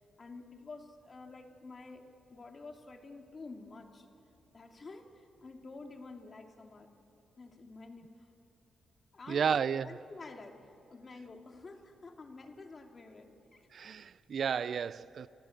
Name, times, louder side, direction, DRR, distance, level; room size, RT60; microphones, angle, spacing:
voice 1, 0.2-4.1 4.5-6.9 7.4-8.3 9.1-13.7, left 3 dB, 45° left, 2.5 m, -49 dB
voice 2, 9.3-9.9 13.7-15.3, right 7 dB, 60° right, 0.4 m, -32 dB
29.0 x 14.0 x 8.9 m
supercardioid pair, 60°, 0 cm